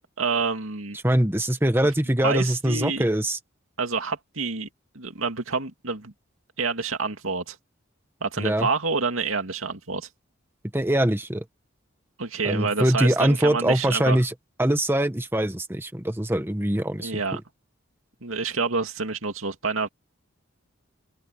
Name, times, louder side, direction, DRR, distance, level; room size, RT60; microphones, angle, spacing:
voice 1, 0.2-1.0 2.2-3.0 3.8-4.7 4.9-6.1 6.6-7.6 8.2-10.1 12.2-14.2 17.0-17.4 18.2-19.9, right 4 dB, 90° right, 2.5 m, -27 dB
voice 2, 1.0-3.4 8.4-8.7 10.7-11.4 12.4-14.3 14.6-17.2, right 1 dB, 10° right, 1.3 m, -23 dB
open air
head